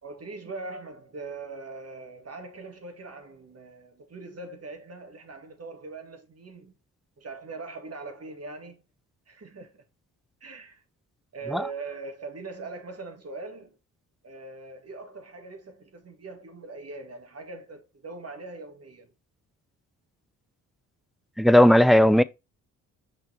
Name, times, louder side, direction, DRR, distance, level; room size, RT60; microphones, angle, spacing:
voice 1, 0.0-6.7 7.2-8.8 9.3-9.9 10.4-10.8 11.3-13.8 14.2-19.1, right 3 dB, 40° right, 2.1 m, -41 dB
voice 2, 21.4-22.2, left 1 dB, ahead, 0.4 m, -16 dB
6.1 x 4.5 x 4.3 m
supercardioid pair, 60°, 36 cm